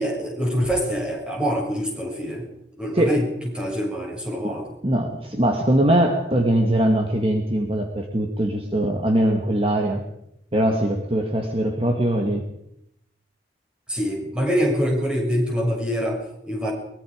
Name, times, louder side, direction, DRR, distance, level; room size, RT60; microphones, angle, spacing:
voice 1, 0.0-2.5 2.8-3.3 3.6-4.7 13.9-16.7, equal, 5° right, -3 dB, 6.9 m, -25 dB
voice 2, 4.4-10.0 10.5-12.4, right 1 dB, 30° right, 3 dB, 2.0 m, -21 dB
23.5 x 22.0 x 5.2 m, 0.80 s
head